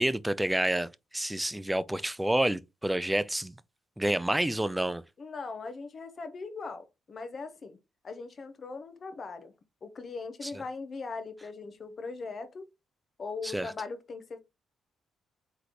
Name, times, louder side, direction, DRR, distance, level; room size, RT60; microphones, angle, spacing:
voice 1, 0.0-3.5 4.0-5.0 13.4-13.7, right 1 dB, 5° right, 0.3 m, -29 dB
voice 2, 5.2-7.8 8.0-9.5 9.8-12.7 13.2-14.4, left 4 dB, 40° left, 0.8 m, -40 dB
3.9 x 3.3 x 2.9 m
cardioid pair, 90°, 0 cm